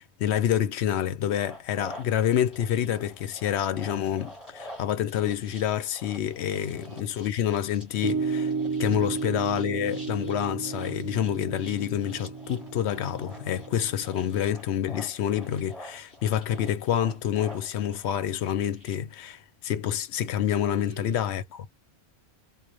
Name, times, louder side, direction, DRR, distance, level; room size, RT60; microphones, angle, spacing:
voice 1, 0.0-8.5 8.8-21.7, left 10 dB, 75° left, 0.8 m, -28 dB
sound 1, 1.3-18.9, equal, 15° left, 2.2 m, -48 dB
voice 2, 6.5-7.1 8.9-9.1 20.7-21.1, right 7 dB, 45° right, 0.7 m, -46 dB
sound 2, 8.0-14.4, right 4 dB, 15° right, 0.9 m, -33 dB
3.7 x 2.2 x 3.0 m
omnidirectional pair, 1.1 m